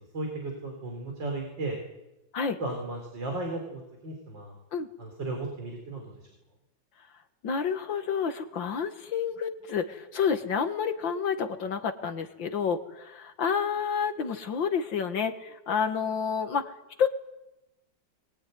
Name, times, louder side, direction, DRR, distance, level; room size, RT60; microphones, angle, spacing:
voice 1, 0.1-1.8 2.6-4.5 5.0-6.1, right 2 dB, 80° right, 2 dB, 4.8 m, -35 dB
voice 2, 7.4-16.7 17.0-17.1, left 6 dB, 85° left, 8 dB, 2.4 m, -29 dB
22.0 x 22.0 x 9.5 m, 0.97 s
omnidirectional pair, 2.0 m